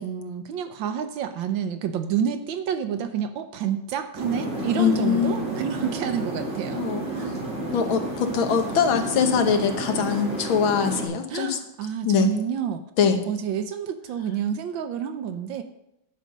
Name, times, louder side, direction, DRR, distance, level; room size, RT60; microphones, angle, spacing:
voice 1, 0.0-6.8 7.1-7.4 11.3-12.8 13.3-15.6, right 8 dB, 75° right, 8 dB, 1.4 m, -29 dB
sound 1, 4.1-11.1, right 1 dB, 40° right, 2.6 m, -31 dB
voice 2, 4.8-5.4 6.7-7.3 7.7-11.6 12.1-12.3 13.0-13.2, left 6 dB, 85° left, 6 dB, 1.9 m, -23 dB
10.5 x 5.2 x 6.5 m, 0.84 s
omnidirectional pair, 2.2 m